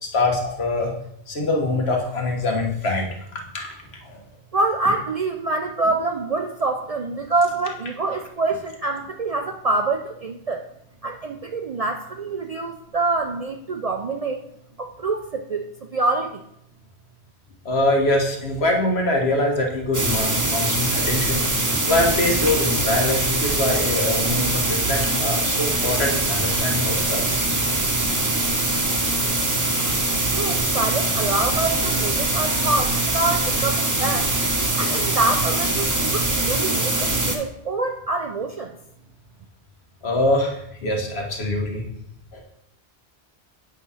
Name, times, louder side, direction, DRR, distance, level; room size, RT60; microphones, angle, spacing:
voice 1, 0.0-0.9 1.3-3.1 3.5-3.7 4.0-4.2 17.6-27.4 40.0-41.8 42.3-42.4, left 2 dB, 70° left, 1 dB, 1.5 m, -24 dB
voice 2, 4.5-10.7 11.0-14.4 14.8-16.4 30.3-34.3 34.7-38.7, right 3 dB, 55° right, 3 dB, 0.4 m, -25 dB
sound 1, 19.9-37.4, right 2 dB, 20° right, 0.8 m, -23 dB
8.3 x 3.6 x 5.6 m, 0.76 s
omnidirectional pair, 1.1 m